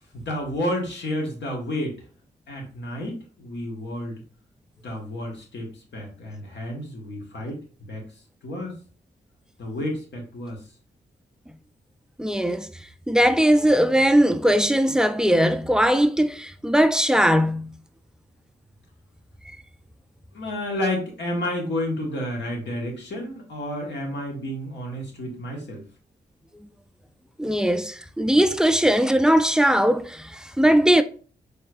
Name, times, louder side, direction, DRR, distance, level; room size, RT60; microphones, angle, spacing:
voice 1, 0.1-2.0 2.5-4.2 4.8-7.6 7.9-8.0 8.4-8.8 9.6-10.6 20.3-25.8, left 1 dB, 70° left, 1.5 m, -30 dB
voice 2, 12.2-12.7 13.1-17.7 27.4-31.0, equal, 5° right, 0.4 m, -19 dB
4.2 x 3.2 x 2.5 m
supercardioid pair, 50°, 19 cm